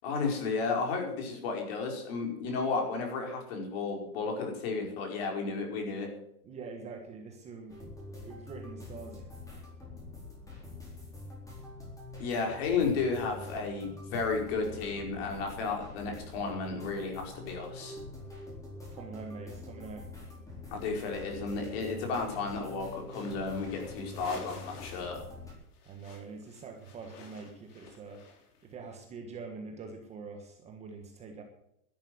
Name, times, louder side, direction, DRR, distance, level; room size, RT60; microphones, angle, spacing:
voice 1, 0.0-6.1 12.2-18.0 20.7-25.2, left 4 dB, 40° left, 2 dB, 5.0 m, -33 dB
voice 2, 6.4-9.3 18.9-20.1 25.8-28.2 28.6-31.4, right 4 dB, 15° right, 3 dB, 1.3 m, -45 dB
sound 1, 7.7-25.5, left 2 dB, 5° left, 4.2 m, -46 dB
sound 2, 23.1-25.2 25.5-28.7, left 4 dB, 80° left, 4.0 m, -50 dB
12.5 x 11.0 x 7.7 m, 0.77 s
supercardioid pair, 165°, 45 cm